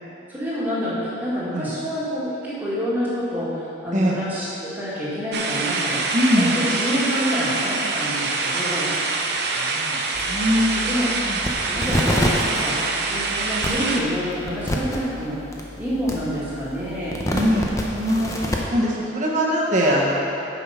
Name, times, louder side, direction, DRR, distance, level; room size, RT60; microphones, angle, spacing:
voice 1, 0.3-6.0 6.3-8.9 10.5-11.1 11.7-15.4 15.7-17.2, equal, 10° right, -9 dB, 2.1 m, -27 dB
sound 1, 5.3-14.0, right 3 dB, 55° right, 0.7 m, -25 dB
voice 2, 6.1-6.6 9.6-10.8 11.2-11.4 17.3-18.3 18.7-20.2, equal, 40° right, -4 dB, 1.3 m, -22 dB
sound 2, 10.1-18.6, equal, 15° left, 0.8 m, -29 dB
9.0 x 5.8 x 5.7 m, 2.9 s
head